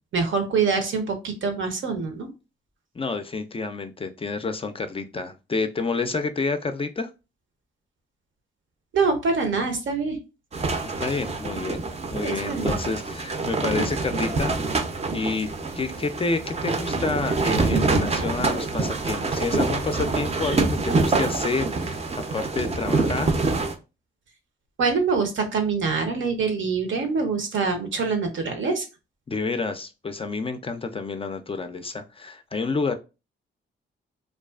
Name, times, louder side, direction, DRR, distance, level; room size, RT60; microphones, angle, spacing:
voice 1, 0.1-2.3 8.9-10.2 12.2-12.8 24.8-28.8, right 4 dB, 65° right, 5 dB, 0.7 m, -25 dB
voice 2, 3.0-7.1 10.8-11.8 12.1-14.5 15.1-15.5 15.8-23.4 29.3-32.9, left 4 dB, 25° left, 8 dB, 0.3 m, -29 dB
sound 1, 10.5-23.8, right 3 dB, 30° right, 0.5 m, -26 dB
2.4 x 2.3 x 2.3 m, 0.29 s
cardioid pair, 60°, 21 cm